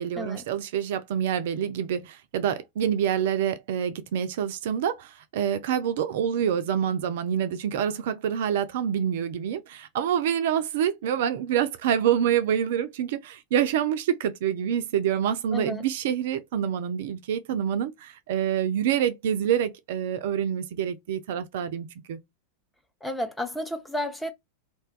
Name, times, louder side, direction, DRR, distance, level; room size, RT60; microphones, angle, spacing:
voice 1, 0.0-22.2, right 9 dB, 55° right, 0.3 m, -27 dB
voice 2, 15.5-15.8 23.0-24.3, left 1 dB, 5° left, 0.6 m, -31 dB
2.6 x 2.2 x 2.2 m
figure-of-eight pair, 90°, 0 cm